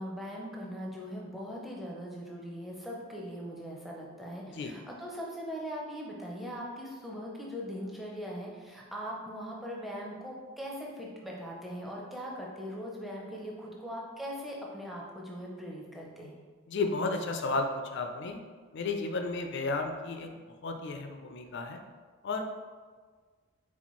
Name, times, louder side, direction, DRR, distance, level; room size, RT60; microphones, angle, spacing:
voice 1, 0.0-16.4, equal, ahead, -3 dB, 0.5 m, -40 dB
voice 2, 16.7-18.4 18.7-20.3 20.6-21.8 22.2-22.4, left 3 dB, 50° left, 4 dB, 0.4 m, -33 dB
4.2 x 4.1 x 3.0 m, 1.5 s
head